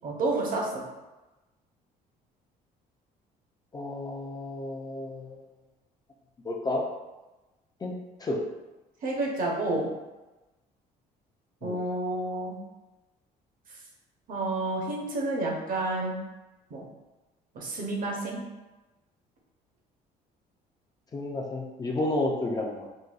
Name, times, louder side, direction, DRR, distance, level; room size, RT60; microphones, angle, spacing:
voice 1, 0.0-0.7 9.0-9.9 11.6-12.6 14.3-16.2 16.7-16.9 17.5-18.4, right 2 dB, 55° right, -1 dB, 0.8 m, -29 dB
voice 2, 3.7-5.5 6.4-6.8 7.8-7.9 8.2-8.4 11.6-11.8 21.1-22.9, left 2 dB, 25° left, 0 dB, 0.4 m, -31 dB
3.9 x 2.2 x 2.4 m, 1.1 s
cardioid pair, 110°, 17 cm